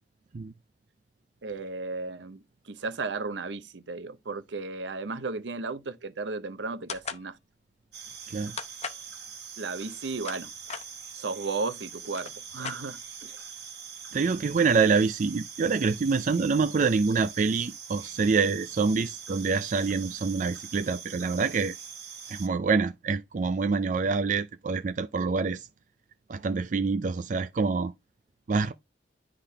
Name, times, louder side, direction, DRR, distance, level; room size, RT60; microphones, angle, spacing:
voice 1, 1.4-7.4 9.6-10.5 11.1-13.4, right 3 dB, 85° right, 0.8 m, -35 dB
sound 1, 6.9-7.3 8.6-9.1 10.0-10.9 11.7-11.8 12.0-13.2, left 6 dB, 40° left, 0.7 m, -38 dB
sound 2, 7.9-22.5, right 7 dB, 65° right, 1.5 m, -43 dB
voice 2, 14.1-21.7 22.3-25.7 26.3-27.9 28.5-28.7, right 4 dB, 45° right, 0.4 m, -26 dB
10.0 x 3.7 x 3.4 m
head